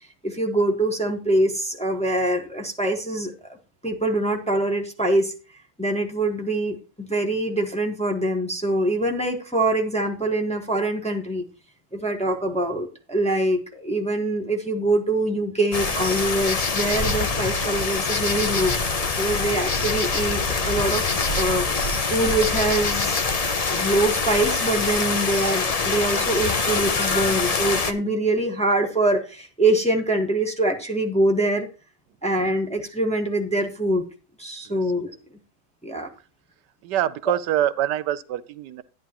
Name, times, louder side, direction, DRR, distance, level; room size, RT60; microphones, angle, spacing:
voice 1, 0.2-3.3 3.8-5.3 5.8-11.4 11.9-18.7 19.2-21.6 22.1-23.2 23.7-31.7 32.2-34.1 34.4-35.1 35.8-36.1, right 1 dB, 5° left, 1.3 m, -24 dB
sound 1, 15.7-27.9, left 4 dB, 60° left, 0.3 m, -24 dB
voice 2, 36.8-38.8, right 12 dB, 85° right, 1.3 m, -25 dB
11.5 x 9.9 x 3.0 m
omnidirectional pair, 1.8 m